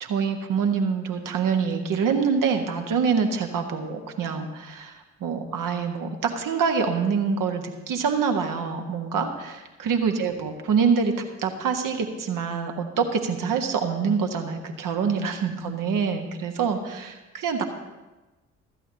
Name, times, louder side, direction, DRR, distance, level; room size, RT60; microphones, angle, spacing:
voice 1, 0.0-17.6, right 6 dB, 50° right, 5 dB, 1.5 m, -25 dB
15.5 x 13.5 x 2.9 m, 1.1 s
figure-of-eight pair, 40°, 40 cm